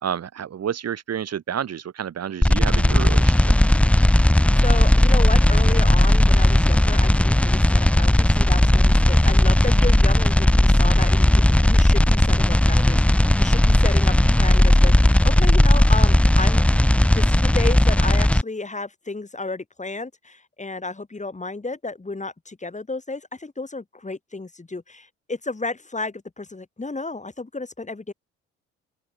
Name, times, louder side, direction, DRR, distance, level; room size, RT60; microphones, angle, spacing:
voice 1, 0.0-3.5, right 9 dB, 50° right, 2.9 m, -29 dB
sound 1, 2.4-18.4, left 1 dB, 5° left, 0.8 m, -16 dB
voice 2, 4.5-16.6 17.1-28.1, left 3 dB, 20° left, 5.4 m, -32 dB
open air
hypercardioid pair, 45°, 32 cm